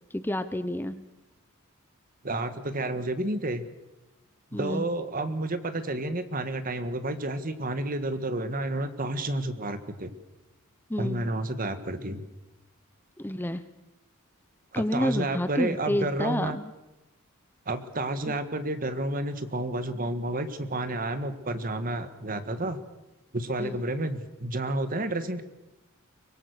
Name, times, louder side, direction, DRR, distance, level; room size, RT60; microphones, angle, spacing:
voice 1, 0.1-1.0 4.5-4.8 10.9-11.3 13.2-13.6 14.7-16.7 18.3-18.4 23.6-23.8, left 1 dB, 10° left, 11 dB, 0.7 m, -29 dB
voice 2, 2.2-3.6 4.5-10.1 11.0-12.2 14.7-16.6 17.7-22.8 23.3-25.4, right 2 dB, 40° right, 10 dB, 1.6 m, -30 dB
24.0 x 22.0 x 6.6 m, 0.99 s
head